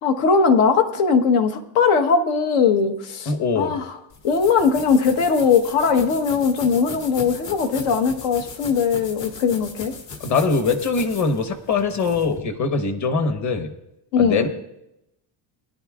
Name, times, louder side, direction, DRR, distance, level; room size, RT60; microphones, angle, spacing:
voice 1, 0.0-4.0 4.2-9.9 14.1-14.5, left 5 dB, 80° left, 6 dB, 1.3 m, -20 dB
voice 2, 3.3-3.7 10.2-13.7 14.2-14.5, left 4 dB, 35° left, 7 dB, 1.1 m, -22 dB
sound 1, 4.1-12.4, left 4 dB, 60° left, 2.0 m, -38 dB
20.0 x 10.5 x 2.4 m, 0.84 s
cardioid pair, 145°, 50 cm